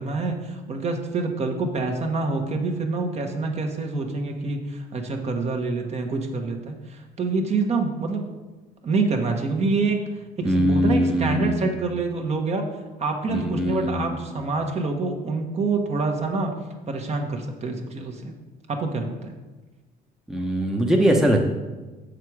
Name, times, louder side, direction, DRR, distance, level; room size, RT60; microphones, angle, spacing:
voice 1, 0.0-8.2 8.8-10.0 10.4-12.7 13.0-16.5 16.9-18.3 18.7-19.3, right 3 dB, 40° right, 3 dB, 1.2 m, -26 dB
voice 2, 10.4-11.6 13.3-14.2 20.3-21.5, equal, 5° right, 0 dB, 0.9 m, -21 dB
7.5 x 6.6 x 4.8 m, 1.2 s
cardioid pair, 110°, 17 cm